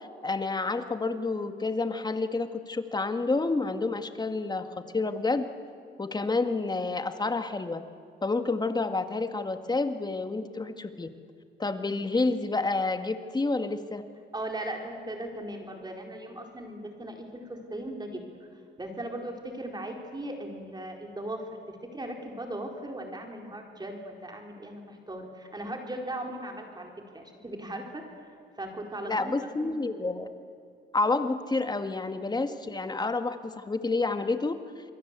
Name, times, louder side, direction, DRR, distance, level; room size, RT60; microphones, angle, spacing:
voice 1, 0.2-4.7 4.9-5.5 6.0-7.8 8.2-11.1 11.6-14.0 29.0-30.3 30.9-34.6, left 3 dB, 20° left, 8 dB, 1.9 m, -29 dB
voice 2, 14.3-18.5 18.8-28.0 28.6-29.8, right 1 dB, 20° right, 2 dB, 4.3 m, -38 dB
28.0 x 22.0 x 8.3 m, 2.3 s
cardioid pair, 90°, 20 cm